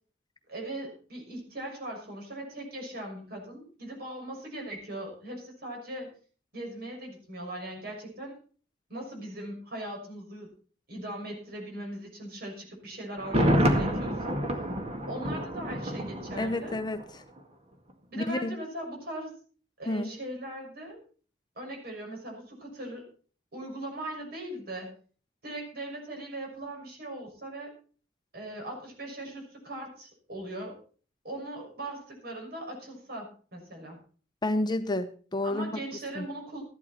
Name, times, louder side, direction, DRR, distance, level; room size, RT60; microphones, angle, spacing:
voice 1, 0.5-6.1 6.5-8.4 8.9-10.5 10.9-14.4 15.1-16.8 18.1-19.4 19.8-21.0 21.6-23.1 23.5-24.9 25.4-27.7 28.3-30.8 31.2-34.0 35.4-36.6, right 1 dB, 60° right, 1 dB, 6.2 m, -39 dB
Thunder, 13.2-17.1 17.4-17.5, equal, 35° right, 2.0 m, -28 dB
voice 2, 16.4-17.0 18.2-18.5 19.9-20.1 34.4-35.7 36.2-36.3, left 1 dB, 25° left, 9 dB, 0.8 m, -29 dB
14.5 x 11.5 x 4.4 m, 0.41 s
head